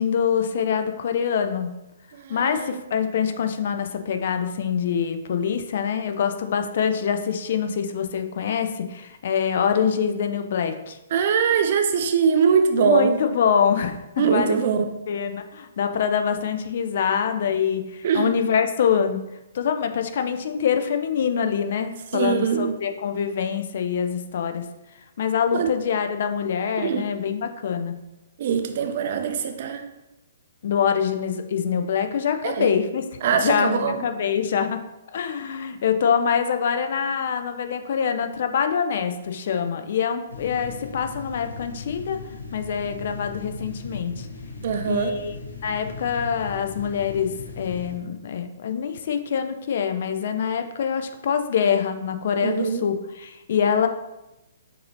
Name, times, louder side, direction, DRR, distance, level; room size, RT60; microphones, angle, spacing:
voice 1, 0.0-1.7 2.3-11.0 12.8-14.0 14.3-14.7 15.1-19.2 19.5-24.6 25.2-27.9 30.6-33.0 33.4-34.8 35.1-42.2 42.5-44.3 44.9-45.3 45.6-53.9, left 7 dB, 50° left, 7 dB, 0.4 m, -25 dB
voice 2, 2.1-2.7 11.1-13.2 14.2-14.8 18.0-18.4 22.1-22.7 25.5-25.7 26.8-27.1 28.4-29.8 32.4-32.7 33.2-34.0 44.6-45.2 52.4-52.8, right 6 dB, 45° right, 6 dB, 0.5 m, -22 dB
sound 1, 40.3-48.0, left 3 dB, 70° left, 0.8 m, -38 dB
6.5 x 2.7 x 2.7 m, 0.95 s
figure-of-eight pair, 120°, 0 cm